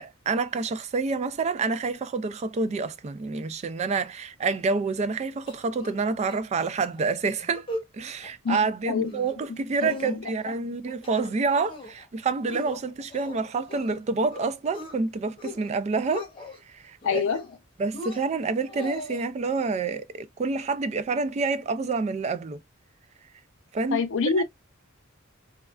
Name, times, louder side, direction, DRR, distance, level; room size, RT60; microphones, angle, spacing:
voice 1, 0.0-7.7 7.9-16.3 16.7-17.2 17.8-22.6 23.7-24.0 24.4-24.5, right 4 dB, 30° right, 0.3 m, -28 dB
sound 1, 5.5-6.0 6.3-6.4 6.7-7.0 7.4-7.9 8.2-8.6 9.0-9.5 9.8-10.5 10.9-11.3 11.7-12.1 12.5-14.0 14.3-14.9 15.3-15.7 15.9-16.6 17.0-17.6 17.9-19.2, left 2 dB, 25° left, 0.9 m, -39 dB
voice 2, 9.8-10.3 17.0-17.4 23.9-24.4, left 5 dB, 65° left, 0.6 m, -26 dB
3.2 x 2.3 x 2.3 m
head